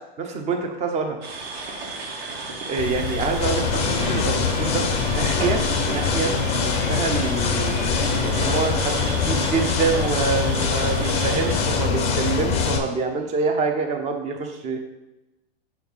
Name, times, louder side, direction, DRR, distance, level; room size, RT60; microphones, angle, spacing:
voice 1, 0.2-1.2 2.6-14.8, right 4 dB, 20° right, 4 dB, 0.8 m, -26 dB
sound 1, 1.2-11.6, right 3 dB, 70° right, 1.9 m, -34 dB
sound 2, 2.8-12.8, left 6 dB, 85° left, 0.7 m, -29 dB
sound 3, 3.4-12.8, left 5 dB, 20° left, 0.7 m, -24 dB
6.3 x 4.5 x 5.5 m, 0.99 s
hypercardioid pair, 145°, 31 cm